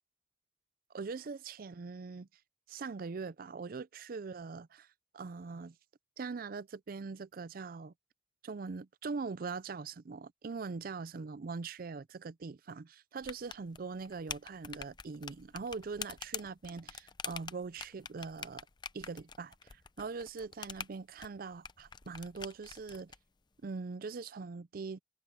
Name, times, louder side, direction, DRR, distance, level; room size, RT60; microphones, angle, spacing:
voice 1, 0.9-2.3 2.7-4.9 5.1-5.8 6.2-7.9 8.4-18.7 18.9-23.1 23.6-25.0, right 4 dB, 55° right, 0.5 m, -42 dB
sound 1, 13.2-23.2, left 6 dB, 25° left, 0.6 m, -46 dB
head